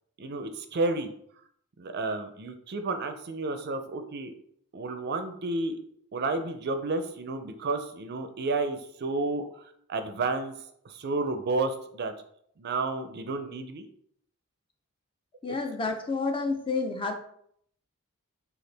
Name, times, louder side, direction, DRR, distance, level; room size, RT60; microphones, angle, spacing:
voice 1, 0.2-1.1 1.8-4.3 4.7-5.8 6.1-10.5 10.8-12.1 12.6-13.8 15.5-15.6, right 3 dB, 50° right, 8 dB, 0.5 m, -31 dB
voice 2, 15.4-17.1, left 3 dB, 25° left, 4 dB, 0.6 m, -29 dB
6.5 x 2.4 x 3.3 m, 0.67 s
head